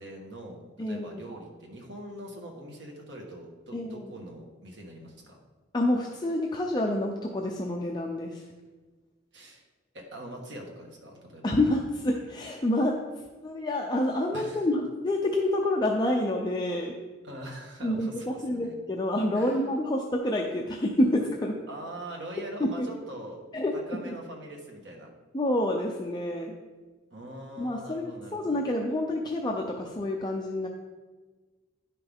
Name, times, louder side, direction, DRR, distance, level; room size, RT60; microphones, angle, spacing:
voice 1, 0.0-5.4 9.3-9.6 9.9-11.5 14.3-14.6 17.2-18.7 19.3-19.7 21.7-23.4 23.7-25.1 27.1-28.6, right 1 dB, 70° right, 0 dB, 1.5 m, -43 dB
voice 2, 0.8-1.2 3.7-4.1 5.7-8.4 11.4-13.0 13.4-16.9 17.8-21.5 22.6-22.9 23.5-24.0 25.3-26.5 27.6-30.7, left 1 dB, 25° left, 0 dB, 0.5 m, -28 dB
10.5 x 5.7 x 3.6 m, 1.4 s
head